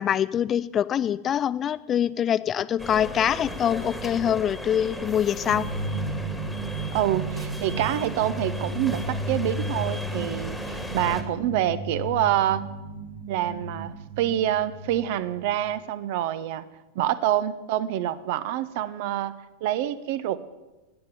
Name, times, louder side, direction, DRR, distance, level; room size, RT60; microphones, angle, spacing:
voice 1, 0.0-5.7, left 9 dB, 25° left, 17 dB, 0.4 m, -24 dB
sound 1, 2.8-11.2, equal, ahead, 1.6 m, -36 dB
sound 2, 5.5-15.7, right 2 dB, 70° right, 1.7 m, -34 dB
voice 2, 6.9-12.6 13.3-16.6 16.9-19.3 19.6-20.4, right 12 dB, 50° right, 15 dB, 0.7 m, -26 dB
14.5 x 9.0 x 6.9 m, 1.1 s
figure-of-eight pair, 90°, 0 cm